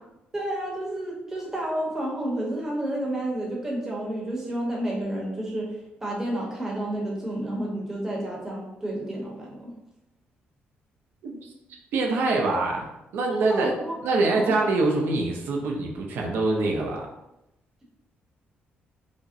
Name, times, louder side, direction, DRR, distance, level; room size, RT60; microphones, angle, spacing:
voice 1, 0.3-9.7 13.3-14.0 14.3-14.6, right 1 dB, 15° right, -4 dB, 0.8 m, -30 dB
voice 2, 11.2-11.5 11.9-13.7 14.0-17.1, right 2 dB, 75° right, 1 dB, 0.5 m, -25 dB
4.9 x 2.0 x 2.6 m, 0.89 s
cardioid pair, 170°, 4 cm